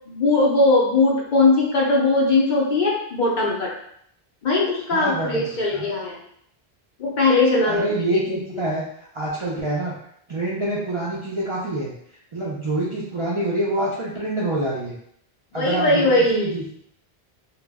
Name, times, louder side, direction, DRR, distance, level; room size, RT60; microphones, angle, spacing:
voice 1, 0.1-3.7 4.4-6.2 7.0-8.6 15.5-16.6, left 2 dB, 55° left, -3 dB, 0.6 m, -20 dB
voice 2, 4.9-5.5 5.7-5.9 7.7-8.8 9.1-9.9 10.3-11.9 12.3-15.0 15.5-16.8, right 1 dB, 50° right, -6 dB, 0.4 m, -26 dB
2.1 x 2.0 x 3.4 m, 0.69 s
omnidirectional pair, 1.1 m